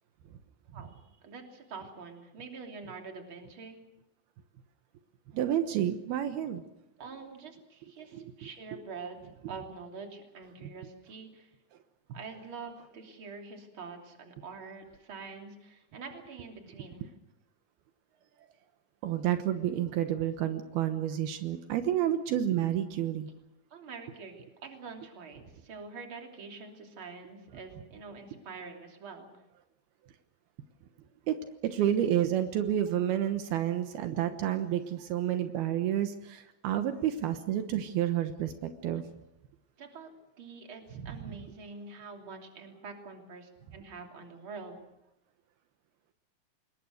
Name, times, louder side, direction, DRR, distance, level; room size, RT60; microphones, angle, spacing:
voice 1, 0.7-3.8 7.0-9.2 9.5-11.5 12.1-17.1 23.7-29.4 38.9-39.0 39.8-40.1 40.4-44.8, right 4 dB, 35° right, 3 dB, 3.5 m, -45 dB
voice 2, 5.3-6.6 8.1-8.2 19.0-23.3 31.3-31.4 31.6-39.0 41.1-41.2, right 11 dB, 80° right, 8 dB, 3.1 m, -30 dB
26.5 x 21.5 x 6.5 m, 0.88 s
omnidirectional pair, 4.4 m